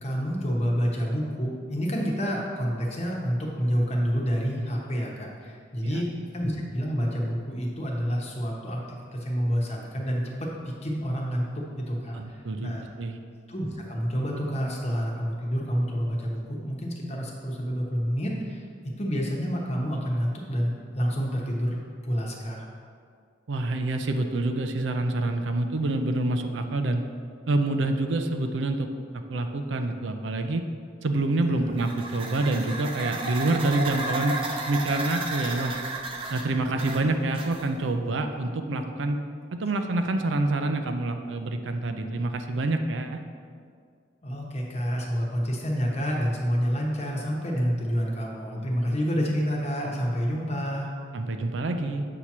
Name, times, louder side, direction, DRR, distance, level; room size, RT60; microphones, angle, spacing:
voice 1, 0.0-12.8 13.5-22.7 31.5-31.8 44.2-50.9, equal, 35° left, -2 dB, 1.0 m, -28 dB
voice 2, 12.1-12.7 13.0-13.2 23.5-27.0 27.5-28.9 29.3-30.7 31.0-34.4 34.7-35.8 36.3-39.2 39.5-43.2 51.1-52.1, right 2 dB, 75° right, 6 dB, 0.5 m, -27 dB
sound 1, 31.7-37.9, right 2 dB, 30° right, 0.6 m, -33 dB
8.1 x 2.9 x 6.0 m, 2.2 s
head